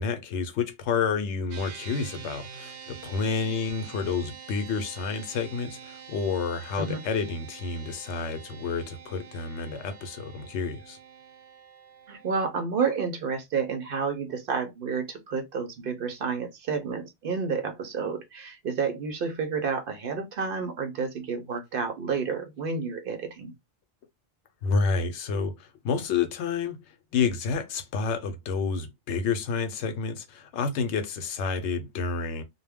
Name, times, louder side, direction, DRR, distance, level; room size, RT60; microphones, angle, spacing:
voice 1, 0.0-11.0 24.6-26.8 27.1-32.4, left 5 dB, 85° left, 0.9 m, -29 dB
sound 1, 1.5-12.3, right 7 dB, 85° right, 0.9 m, -46 dB
voice 2, 12.1-23.5, right 5 dB, 60° right, 0.7 m, -30 dB
2.2 x 2.1 x 3.3 m
omnidirectional pair, 1.2 m